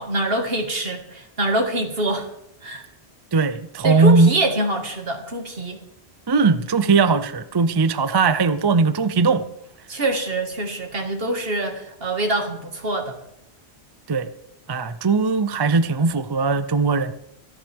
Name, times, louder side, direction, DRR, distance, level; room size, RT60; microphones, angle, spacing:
voice 1, 0.0-2.3 2.6-2.9 3.8-5.8 9.9-13.2, right 2 dB, 65° right, 4 dB, 2.1 m, -25 dB
voice 2, 3.3-4.3 6.3-9.4 14.1-14.3 14.7-17.1, right 4 dB, 30° right, 13 dB, 0.5 m, -19 dB
26.5 x 10.5 x 3.5 m, 0.81 s
omnidirectional pair, 1.1 m